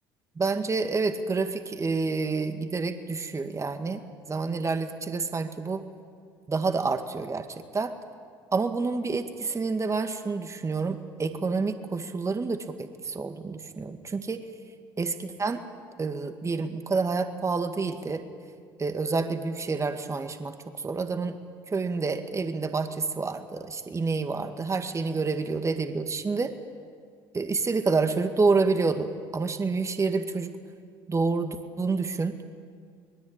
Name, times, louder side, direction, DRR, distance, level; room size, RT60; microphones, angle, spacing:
voice 1, 0.4-4.0 4.3-5.8 6.5-7.5 7.7-7.9 8.5-14.5 15.0-15.6 16.0-18.2 18.8-20.5 20.8-21.4 21.7-26.5 27.3-30.6 31.1-32.3, right 4 dB, 25° right, 7 dB, 2.0 m, -28 dB
24.5 x 21.0 x 8.9 m, 2.1 s
hypercardioid pair, 65°, 11 cm